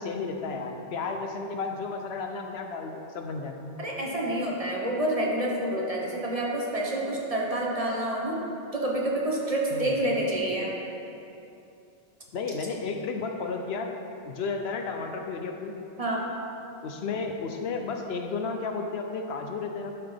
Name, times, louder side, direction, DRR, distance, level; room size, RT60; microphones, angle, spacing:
voice 1, 0.0-3.7 9.7-10.0 12.3-13.9 14.3-15.7 16.8-19.9, left 4 dB, 85° left, 4 dB, 0.9 m, -33 dB
voice 2, 3.8-8.4 8.7-10.7 16.0-16.2, right 1 dB, 35° right, -3 dB, 1.2 m, -28 dB
11.0 x 6.0 x 3.4 m, 2.7 s
omnidirectional pair, 1.0 m